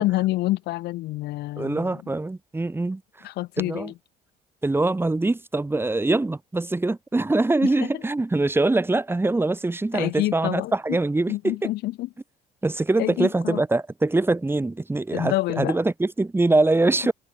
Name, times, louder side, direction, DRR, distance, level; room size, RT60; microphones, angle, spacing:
voice 1, 0.0-2.0 3.2-3.9 7.6-7.7 9.9-11.0 11.3-12.1 13.0-13.6 15.1-15.8, left 17 dB, 80° left, 1.2 m, -27 dB
voice 2, 1.6-3.3 3.6-3.9 4.6-11.7 12.6-17.1, right 2 dB, 15° right, 4.3 m, -23 dB
cardioid pair, 110°, 17 cm